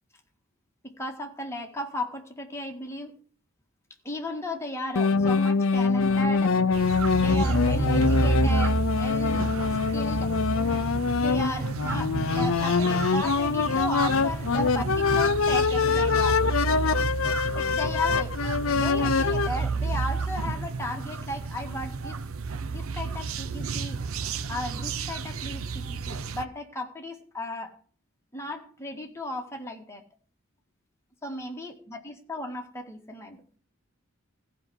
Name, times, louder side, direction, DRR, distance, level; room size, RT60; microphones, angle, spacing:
voice 1, 0.8-3.1 4.0-6.7 7.2-9.5 9.9-10.4 11.2-16.4 17.5-18.4 18.7-22.3 22.7-24.0 24.5-27.8 28.3-30.0 31.2-33.6, left 1 dB, 15° left, 2 dB, 1.8 m, -35 dB
sound 1, 5.0-19.5, left 5 dB, 70° left, 0.6 m, -24 dB
sound 2, 6.7-26.4, right 4 dB, 75° right, 0.7 m, -30 dB
15.0 x 5.6 x 8.0 m, 0.43 s
head